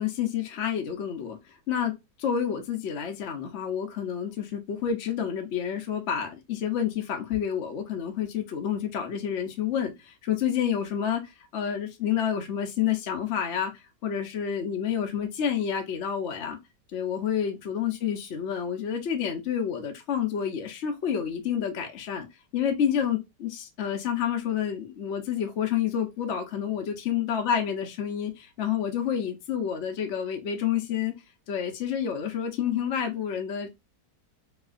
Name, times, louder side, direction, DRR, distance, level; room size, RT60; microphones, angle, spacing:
voice 1, 0.0-1.4 1.7-1.9 2.2-13.7 14.0-16.6 16.9-22.3 22.5-31.1 31.5-33.7, left 8 dB, 55° left, 0.8 m, -29 dB
3.2 x 2.8 x 2.5 m
omnidirectional pair, 1.9 m